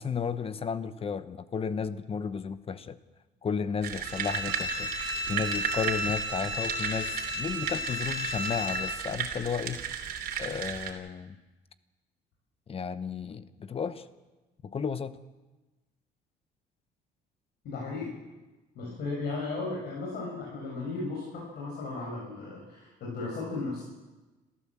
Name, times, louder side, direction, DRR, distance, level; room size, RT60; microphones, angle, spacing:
voice 1, 0.0-3.0 3.4-4.9 5.3-9.8 10.4-11.4 12.7-14.1 14.6-15.2, left 6 dB, 35° left, 13 dB, 1.0 m, -33 dB
sound 1, 3.8-10.9, right 8 dB, 60° right, 3.3 m, -35 dB
Bowed string instrument, 4.0-9.0, left 1 dB, 40° right, 3.1 m, -34 dB
voice 2, 17.6-18.1 18.8-23.8, left 3 dB, 70° left, -4 dB, 7.0 m, -35 dB
27.0 x 14.0 x 7.6 m, 1.2 s
cardioid pair, 110°, 17 cm